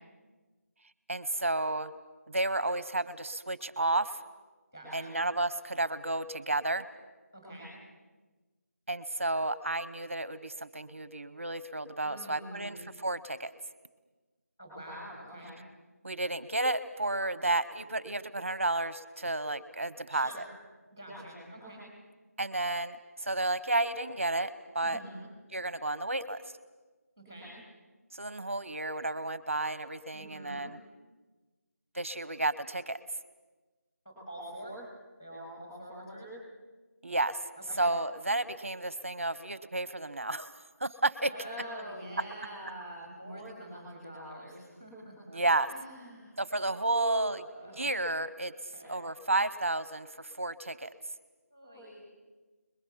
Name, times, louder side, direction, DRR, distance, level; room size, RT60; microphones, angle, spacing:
voice 1, 1.1-1.9 2.3-4.2 4.9-6.9 8.9-13.5 16.0-20.4 22.4-25.0 25.5-26.4 28.1-30.8 31.9-33.0 37.0-37.4 37.8-40.5 40.8-41.3 45.3-45.7 46.4-48.5 48.9-50.9, right 2 dB, 30° right, 15 dB, 0.9 m, -32 dB
voice 2, 4.7-5.1 7.3-7.7 12.0-12.8 14.6-15.5 20.1-20.4 20.9-21.8 24.8-25.2 27.2-27.5 30.1-30.6 34.0-34.8 35.2-36.3 37.6-37.8 41.3-45.4 45.7-46.7 46.9-47.8 48.7-48.9 51.5-52.0, right 1 dB, 10° left, -4 dB, 7.0 m, -45 dB
28.0 x 21.5 x 7.3 m, 1.3 s
figure-of-eight pair, 180°, 9 cm